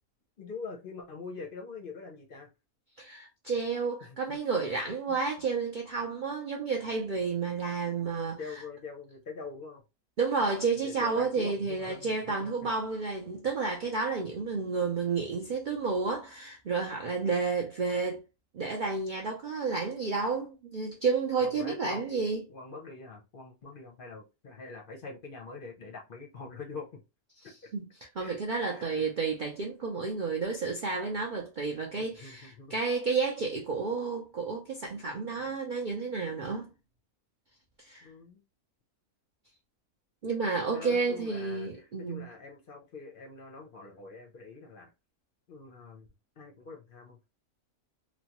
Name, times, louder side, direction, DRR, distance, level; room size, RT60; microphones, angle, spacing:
voice 1, 0.4-2.5 4.0-4.4 8.4-9.8 10.8-12.7 21.4-22.0 22.5-26.9 27.6-27.7 28.2-29.1 32.0-32.7 35.2-35.5 38.0-38.4 40.7-44.9 45.5-46.1 46.4-47.2, left 4 dB, 55° left, 0.6 m, -44 dB
voice 2, 3.0-8.6 10.2-18.2 18.5-22.5 27.4-27.8 28.1-36.7 37.8-38.1 40.2-42.3, right 4 dB, 90° right, 0.4 m, -31 dB
3.1 x 2.1 x 2.8 m
omnidirectional pair, 1.6 m